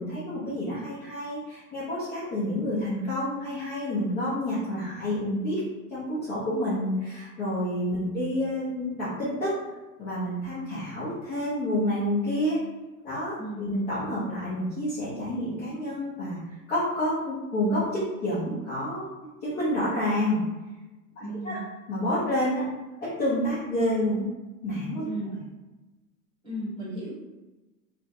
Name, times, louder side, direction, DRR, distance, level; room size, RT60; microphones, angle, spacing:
voice 1, 0.0-5.6 5.9-9.5 10.0-12.6 13.0-16.4 16.7-19.1 19.4-20.4 21.4-21.6 21.9-22.6 23.0-24.3 24.6-25.0, left 1 dB, 20° left, -10 dB, 0.4 m, -28 dB
voice 2, 13.3-13.7 21.2-21.6 25.0-25.3 26.4-27.1, equal, 10° right, -8 dB, 0.9 m, -35 dB
2.4 x 2.1 x 2.7 m, 1.1 s
hypercardioid pair, 120°, 48 cm